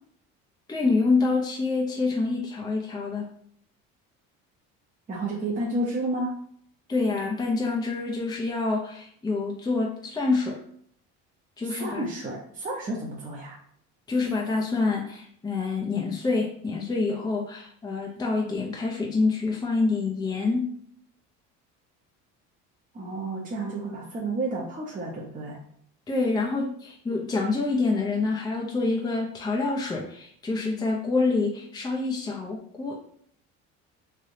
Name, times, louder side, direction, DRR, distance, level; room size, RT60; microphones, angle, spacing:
voice 1, 0.7-3.3 6.9-10.6 11.6-12.1 14.1-20.7 26.1-33.0, left 3 dB, 10° left, -1 dB, 0.5 m, -26 dB
voice 2, 5.1-6.4 11.6-13.6 22.9-25.6, right 2 dB, 25° right, -3 dB, 0.8 m, -31 dB
3.3 x 2.7 x 2.6 m, 0.63 s
supercardioid pair, 85°, 33 cm